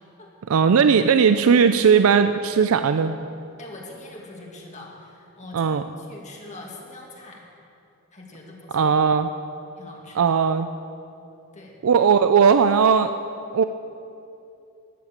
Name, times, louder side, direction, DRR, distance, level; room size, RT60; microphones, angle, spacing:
voice 1, 0.5-3.2 5.5-5.8 8.7-9.3 10.2-10.7 11.8-13.1 13.5-13.6, right 6 dB, 75° right, 10 dB, 0.4 m, -18 dB
voice 2, 3.6-7.4 8.1-8.9 9.8-10.3 11.5-11.8, left 2 dB, 35° left, -1 dB, 2.0 m, -43 dB
12.5 x 9.4 x 7.5 m, 2.7 s
head